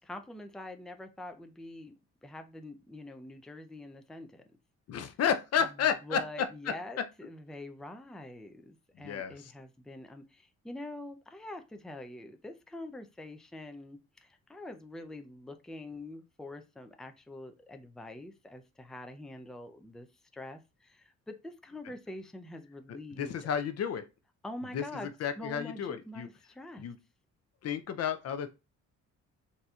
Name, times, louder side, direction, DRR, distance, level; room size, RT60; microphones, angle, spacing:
voice 1, 0.0-1.9 2.2-4.4 6.0-20.1 20.3-23.5 24.4-25.1 25.4-26.9, left 1 dB, ahead, 0.5 m, -45 dB
voice 2, 4.9-6.2 6.7-6.8 9.0-9.5 22.9-24.0 24.7-26.3 26.8-27.0 27.6-28.5, left 7 dB, 55° left, 0.5 m, -32 dB
4.0 x 2.7 x 2.4 m
cardioid pair, 90°, 30 cm